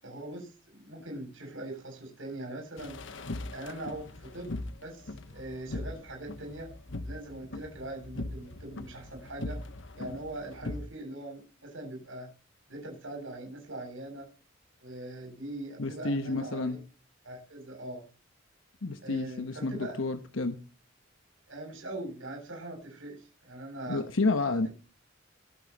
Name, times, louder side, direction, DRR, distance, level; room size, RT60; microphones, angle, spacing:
voice 1, 0.0-3.0 3.5-4.5 4.8-6.7 7.0-9.6 10.0-12.3 12.7-14.3 14.8-16.8 17.2-18.1 19.0-20.0 21.5-24.0, right 1 dB, 75° right, 7.6 m, -41 dB
sound 1, 2.8-10.8, left 2 dB, 65° left, 1.2 m, -40 dB
voice 2, 15.8-16.8 18.8-20.6 23.9-24.7, left 2 dB, 85° left, 1.1 m, -30 dB
22.0 x 8.7 x 4.3 m
head